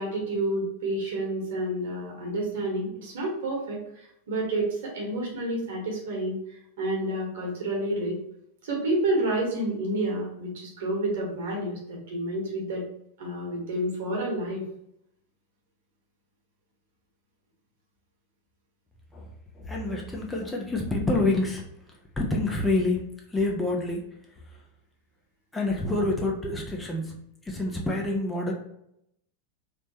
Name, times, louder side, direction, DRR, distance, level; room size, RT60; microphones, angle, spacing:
voice 1, 0.0-3.8 4.3-6.4 6.8-8.2 8.6-12.8 13.2-14.6, right 1 dB, 55° right, -2 dB, 1.3 m, -29 dB
voice 2, 19.6-21.6 22.2-23.0 23.3-24.0 25.5-27.1 27.5-28.5, left 2 dB, 10° left, -1 dB, 0.6 m, -27 dB
3.4 x 3.1 x 2.8 m, 0.77 s
figure-of-eight pair, 90°, 0 cm